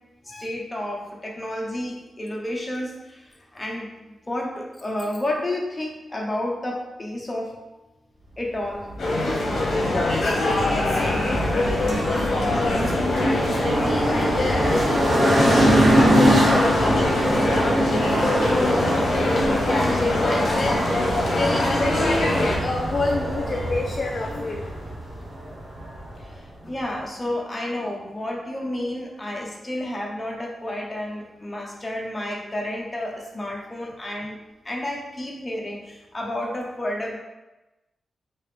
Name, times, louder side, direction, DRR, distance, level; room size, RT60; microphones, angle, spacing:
voice 1, 0.2-7.6 8.4-8.9 18.6-18.8 24.3-24.7 26.2-34.4 34.6-37.1, left 1 dB, 20° left, -1 dB, 0.7 m, -31 dB
sound 1, 8.9-26.3, equal, 60° right, 1.4 m, -23 dB
sound 2, 9.0-22.6, left 2 dB, 60° left, 0.8 m, -24 dB
voice 2, 9.6-24.8, left 3 dB, 45° left, 0 dB, 0.3 m, -30 dB
3.4 x 2.8 x 3.4 m, 1.1 s
cardioid pair, 100°, 0 cm